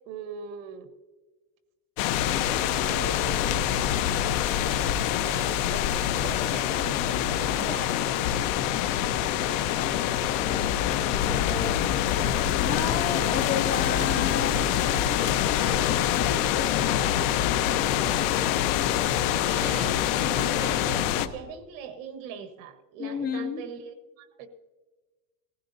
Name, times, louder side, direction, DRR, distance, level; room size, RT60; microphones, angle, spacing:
voice 1, 0.1-0.9 2.7-3.9 5.1-7.9 19.5-21.0 21.3-24.5, right 6 dB, 75° right, 8 dB, 1.5 m, -41 dB
sound 1, 2.0-21.3, left 10 dB, 65° left, 1.0 m, -25 dB
voice 2, 10.4-11.9 12.6-14.6 16.1-18.1 20.2-20.5 23.0-23.6, left 6 dB, 35° left, 0 dB, 2.2 m, -34 dB
19.5 x 15.0 x 2.7 m, 1.3 s
cardioid pair, 160°, 41 cm